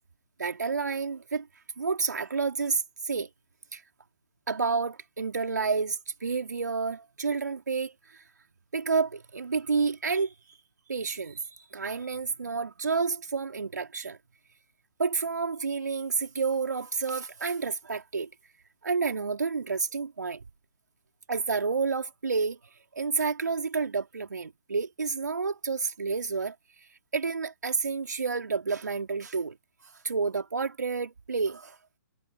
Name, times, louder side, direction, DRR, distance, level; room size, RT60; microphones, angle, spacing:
voice 1, 0.4-1.5 1.8-3.3 3.7-3.8 4.5-8.2 8.7-10.6 10.9-14.2 15.0-18.3 18.8-20.4 21.3-22.6 22.9-26.5 27.1-29.6 29.8-31.8, right 4 dB, 70° right, 3.5 m, -30 dB
figure-of-eight pair, 130°, 10 cm